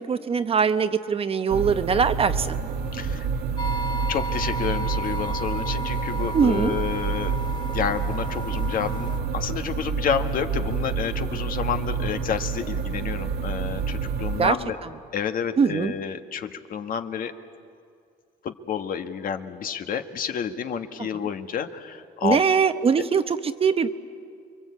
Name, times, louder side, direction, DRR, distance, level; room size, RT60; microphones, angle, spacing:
voice 1, 0.0-2.6 6.3-6.7 14.4-14.5 15.6-15.9 22.2-23.2 23.6-23.9, right 6 dB, 35° right, 10 dB, 1.0 m, -21 dB
sound 1, 1.5-14.5, right 5 dB, 70° right, 1.7 m, -28 dB
voice 2, 2.9-3.3 4.1-7.3 7.7-14.8 15.1-17.3 18.4-22.4 23.0-23.1, left 7 dB, 55° left, 7 dB, 1.5 m, -29 dB
sound 2, 3.6-9.2, equal, 25° left, 1.3 m, -34 dB
29.0 x 22.5 x 8.4 m, 2.2 s
cardioid pair, 110°, 17 cm